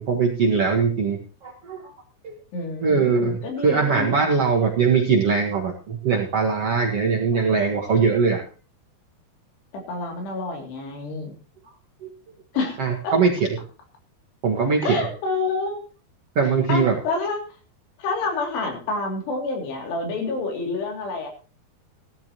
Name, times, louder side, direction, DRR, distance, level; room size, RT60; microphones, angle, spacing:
voice 1, 0.0-1.8 2.2-2.4 2.8-8.4 12.0-12.1 12.8-13.3 14.4-15.0 16.4-16.9, right 5 dB, 55° right, 0 dB, 1.7 m, -21 dB
voice 2, 2.5-4.2 9.7-11.3 12.5-13.1 14.8-15.8 16.7-17.4 18.0-21.3, left 3 dB, 80° left, 2 dB, 4.9 m, -28 dB
16.5 x 13.0 x 3.0 m, 0.37 s
omnidirectional pair, 4.7 m